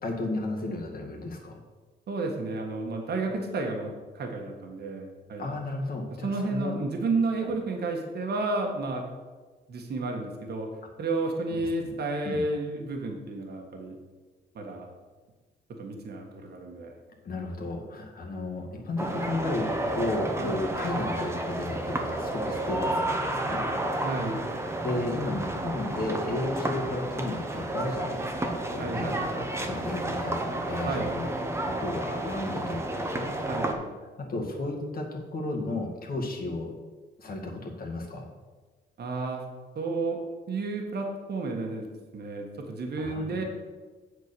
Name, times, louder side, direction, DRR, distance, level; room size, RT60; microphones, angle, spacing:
voice 1, 0.0-1.6 5.4-6.8 7.4-7.5 11.6-12.0 12.2-12.4 17.2-23.7 24.8-31.3 31.6-32.8 33.1-33.3 34.2-36.7 37.2-38.3 43.0-43.4, left 2 dB, 50° left, 0 dB, 2.0 m, -33 dB
voice 2, 2.1-5.5 6.2-9.0 9.7-10.7 11.0-13.9 14.5-14.9 15.8-16.9 20.4-20.6 24.0-24.4 28.8-29.2 30.8-31.1 33.5-33.8 39.0-39.4 39.7-40.2 40.5-41.9 42.1-43.4, right 3 dB, 55° right, 2 dB, 1.5 m, -31 dB
sound 1, 19.0-33.7, right 1 dB, 15° right, 1.1 m, -31 dB
8.0 x 4.5 x 6.9 m, 1.3 s
cardioid pair, 90°, 20 cm